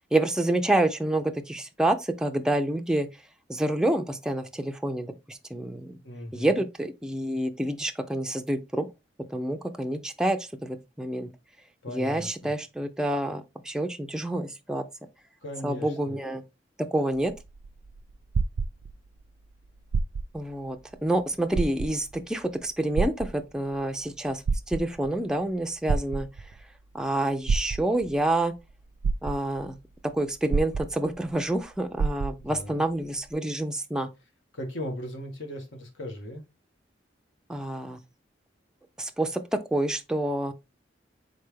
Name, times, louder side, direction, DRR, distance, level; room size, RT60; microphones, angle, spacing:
voice 1, 0.1-3.1 3.5-6.0 6.3-8.9 9.3-11.3 11.9-14.8 15.6-16.4 16.8-17.3 20.3-26.5 26.9-28.5 29.2-29.8 30.1-34.1 37.5-38.0 39.0-40.5, right 1 dB, 5° right, 0.3 m, -28 dB
voice 2, 6.0-6.6 11.8-12.5 15.4-16.1 32.5-32.8 34.5-36.4, left 1 dB, 80° left, 1.3 m, -37 dB
sound 1, 17.3-19.2 19.8-20.5 20.9-21.0 21.5-22.2 23.0-23.8 24.3-25.1 25.9-26.6 27.5-28.2 28.7-28.8 29.0-29.7 30.5-31.3 31.6-31.7 32.0-32.6 33.3-33.4, right 4 dB, 80° right, 0.4 m, -28 dB
4.0 x 3.3 x 3.3 m
head